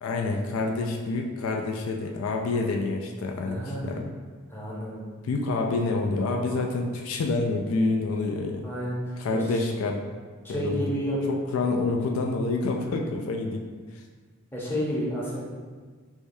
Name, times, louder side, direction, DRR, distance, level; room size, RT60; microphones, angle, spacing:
voice 1, 0.0-4.1 5.2-8.7 9.2-10.0 10.5-10.9 11.3-13.6 13.9-14.0, left 3 dB, 70° left, 2 dB, 0.3 m, -27 dB
voice 2, 3.4-3.8 4.5-5.0 8.6-9.6 10.4-11.2 12.8-13.0 14.5-15.4, equal, 10° left, -6 dB, 0.7 m, -31 dB
4.7 x 2.2 x 2.6 m, 1.5 s
head